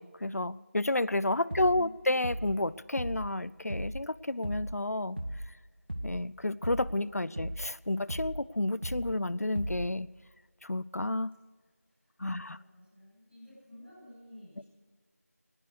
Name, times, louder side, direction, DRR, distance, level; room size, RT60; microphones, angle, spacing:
voice 1, 0.0-5.2 6.0-10.1 10.6-11.3 12.2-12.6 14.6-14.7, left 2 dB, 70° left, 21 dB, 0.5 m, -31 dB
voice 2, 1.4-2.1 7.2-7.4 12.3-14.6, left 1 dB, ahead, -22 dB, 3.2 m, -53 dB
sound 1, 1.5-1.9 2.2-2.6 3.0-3.3 3.7-4.1 4.4-4.8 5.2-5.5 5.9-6.3 6.6-7.0 7.4-7.7 8.1-8.5 8.8-9.2 9.6-10.0, equal, 40° right, 0.8 m, -37 dB
19.5 x 11.0 x 6.5 m, 1.5 s
figure-of-eight pair, 180°, 8 cm